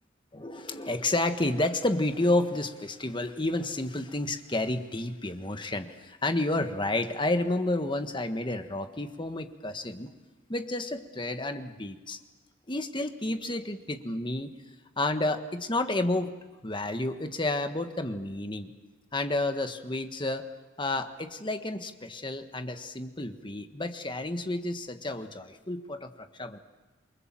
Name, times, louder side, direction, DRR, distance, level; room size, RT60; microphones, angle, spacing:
voice 1, 0.3-10.1 10.5-12.2 12.7-14.5 15.0-16.3 16.6-18.7 19.1-20.5 20.8-26.6, left 2 dB, 25° left, 8 dB, 1.5 m, -30 dB
29.0 x 23.5 x 7.6 m, 1.3 s
head